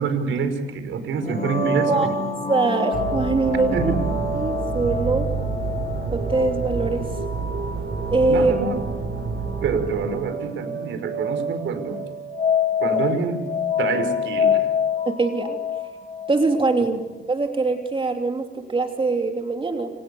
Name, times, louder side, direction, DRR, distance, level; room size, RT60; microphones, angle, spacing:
voice 1, 0.0-2.2 3.7-4.0 8.3-8.8 9.6-12.0 12.8-13.4 13.8-14.7, right 5 dB, 75° right, 8 dB, 5.4 m, -26 dB
sound 1, 1.2-16.8, left 5 dB, 35° left, 3.7 m, -28 dB
voice 2, 2.5-4.0 4.3-5.3 6.1-7.0 8.1-8.6 12.8-13.0 15.1-15.6 16.3-17.0 17.3-19.9, right 3 dB, 25° right, 4 dB, 3.0 m, -22 dB
sound 2, 2.9-10.1, right 5 dB, 60° right, 5.8 m, -28 dB
29.5 x 28.0 x 7.1 m, 1.1 s
cardioid pair, 90°, 20 cm